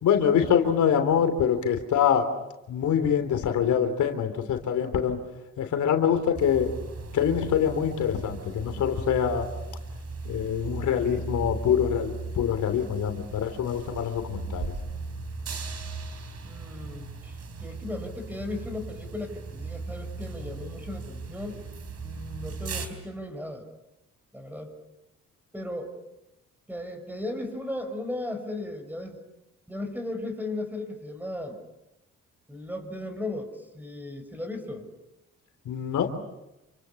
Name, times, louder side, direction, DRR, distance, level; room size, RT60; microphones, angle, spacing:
voice 1, 0.0-2.3 2.7-5.2 5.6-6.7 7.1-9.5 10.2-14.7 35.6-36.1, left 8 dB, 75° left, 7 dB, 3.2 m, -25 dB
sound 1, 6.3-22.9, right 4 dB, 55° right, 4.6 m, -37 dB
voice 2, 16.4-21.6 22.0-23.7 24.3-24.8 25.5-25.9 26.7-29.2 29.7-31.6 32.5-34.9, left 2 dB, 5° right, 7 dB, 6.5 m, -36 dB
28.5 x 25.5 x 7.1 m, 0.92 s
cardioid pair, 90°, 30 cm